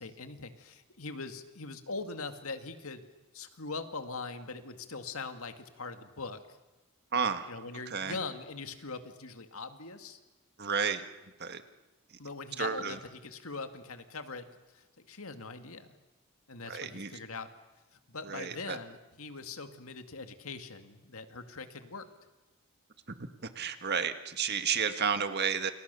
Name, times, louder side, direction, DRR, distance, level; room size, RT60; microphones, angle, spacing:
voice 1, 0.0-3.0 3.3-6.6 7.5-10.2 12.2-15.9 16.5-17.5 18.1-22.1, left 3 dB, 70° left, 8 dB, 2.1 m, -42 dB
voice 2, 7.1-7.5 7.9-8.2 10.6-11.0 11.4-11.6 12.6-13.0 16.7-17.1 18.2-18.8 23.4-25.7, right 6 dB, 45° right, 9 dB, 1.7 m, -31 dB
29.0 x 29.0 x 6.9 m, 1.1 s
head